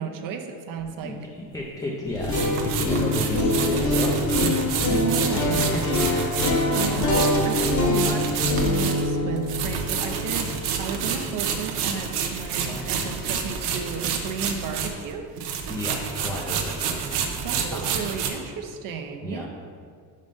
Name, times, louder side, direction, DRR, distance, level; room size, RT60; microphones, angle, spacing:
voice 1, 0.0-1.2 4.9-5.6 6.7-8.3 8.6-10.5 10.8-15.3 17.3-19.5, right 6 dB, 55° right, 5 dB, 0.6 m, -33 dB
sound 1, 0.8-0.9 2.2-15.1 15.4-18.3, right 7 dB, 80° right, 0.9 m, -29 dB
voice 2, 1.0-4.5 5.2-6.5 6.9-7.3 7.8-8.0 10.3-10.6 12.6-13.3 15.7-17.2 17.7-17.9 19.2-19.5, left 1 dB, 10° left, -3 dB, 0.4 m, -33 dB
sound 2, 2.1-12.1, left 2 dB, 45° left, 1.0 m, -25 dB
5.2 x 5.2 x 5.3 m, 2.1 s
cardioid pair, 160°, 40 cm